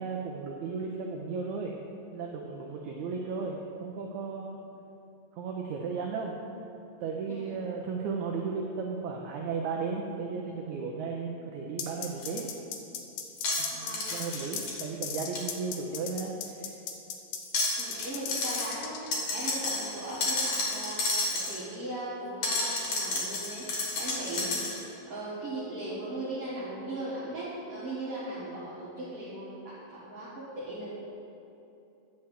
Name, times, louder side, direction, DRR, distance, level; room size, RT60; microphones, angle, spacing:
voice 1, 0.0-1.7 2.1-4.6 5.4-6.3 7.0-12.5 13.6-16.7, right 5 dB, 85° right, 0 dB, 1.6 m, -35 dB
sound 1, 11.8-19.1, left 7 dB, 75° left, 2.0 m, -37 dB
sound 2, 12.2-12.3 13.4-14.7 15.4-15.5 17.4-18.1 18.3-18.7 19.1-21.6 22.4-24.8, left 2 dB, 55° left, 2.3 m, -31 dB
voice 2, 13.7-14.0 17.8-19.0 19.3-30.9, right 1 dB, 50° right, -10 dB, 2.1 m, -38 dB
10.0 x 4.5 x 7.4 m, 2.8 s
omnidirectional pair, 4.1 m